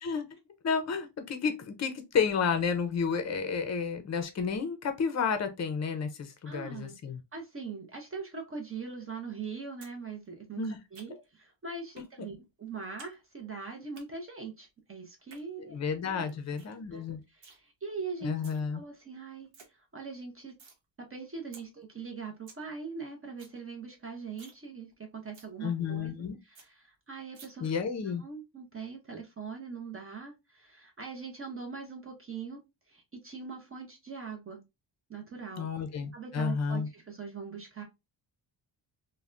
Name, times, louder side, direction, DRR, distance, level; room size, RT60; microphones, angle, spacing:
voice 1, 0.0-0.4 0.6-7.2 10.6-10.8 15.7-17.2 18.2-18.8 25.6-26.4 27.6-28.2 35.6-36.9, left 6 dB, 35° left, 0.5 m, -31 dB
voice 2, 6.4-7.0 7.3-16.6 16.9-20.5 21.0-32.6 32.9-34.6 35.1-35.7 36.1-37.8, right 5 dB, 30° right, 0.6 m, -42 dB
sound 1, 9.8-10.0 10.3-11.4 12.0-12.1 12.4-13.1 13.4-14.0 15.1-15.4 15.9-16.0 16.3-16.4 16.6-16.8 17.1-17.6 18.2-18.6 19.0-19.1 19.3-19.7 20.0-20.8 21.1-21.2 21.5-21.6 22.0-22.1 22.3-22.6 23.0-23.1 23.3-23.6 23.9-24.0 24.3-24.6 24.9-25.0 25.3-25.5 25.9-26.0 26.2-26.3 26.5-26.7 27.3-27.5, right 4 dB, 75° right, 0.9 m, -53 dB
3.2 x 2.2 x 2.4 m
wide cardioid pair, 145°, 46 cm